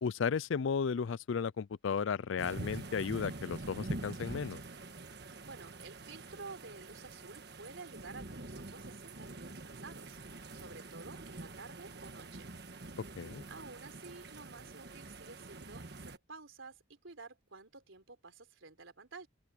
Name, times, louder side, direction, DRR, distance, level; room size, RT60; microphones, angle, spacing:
voice 1, 0.0-4.6 13.2-13.4, left 6 dB, 80° left, 0.4 m, -34 dB
sound 1, 2.4-16.2, right 2 dB, 55° right, 1.5 m, -46 dB
voice 2, 5.4-10.2 10.5-12.5 13.5-19.3, right 3 dB, 85° right, 3.7 m, -51 dB
open air
head